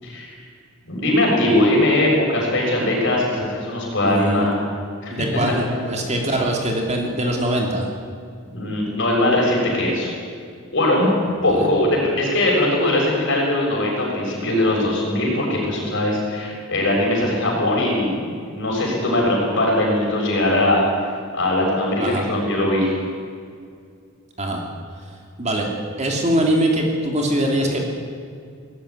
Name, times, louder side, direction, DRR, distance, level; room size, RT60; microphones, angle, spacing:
voice 1, 0.9-4.6 5.0-5.3 8.5-10.1 10.7-11.1 11.4-18.2 18.5-20.8 21.3-22.9, left 1 dB, 55° left, -2 dB, 6.9 m, -20 dB
voice 2, 4.0-4.5 5.1-7.9 11.5-11.7 22.0-22.2 24.4-24.6 25.4-25.7 26.0-27.8, right 1 dB, 30° right, 1 dB, 2.8 m, -22 dB
19.0 x 15.0 x 9.9 m, 2.2 s
head